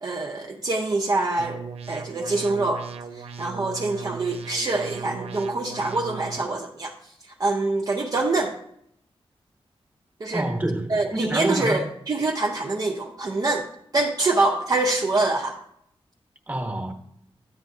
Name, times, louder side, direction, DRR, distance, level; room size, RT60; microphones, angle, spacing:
voice 1, 0.0-2.8 3.1-6.9 7.4-8.5 10.2-10.5 10.9-13.7 13.9-15.6, right 2 dB, 40° right, 1 dB, 0.7 m, -25 dB
sound 1, 1.4-6.4, right 5 dB, 85° right, 0.8 m, -37 dB
voice 2, 10.3-11.8 16.5-16.9, right 1 dB, 15° right, 4 dB, 1.1 m, -27 dB
11.0 x 9.2 x 2.7 m, 0.73 s
wide cardioid pair, 160°, 10 cm